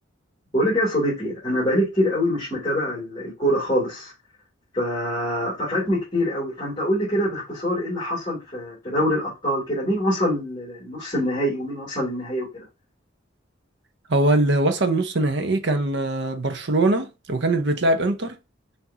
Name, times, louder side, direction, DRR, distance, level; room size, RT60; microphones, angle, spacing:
voice 1, 0.5-4.1 4.7-12.6, equal, 20° left, 2.5 m, -24 dB
voice 2, 14.1-18.4, right 2 dB, 60° right, 0.7 m, -22 dB
6.0 x 2.7 x 2.8 m
head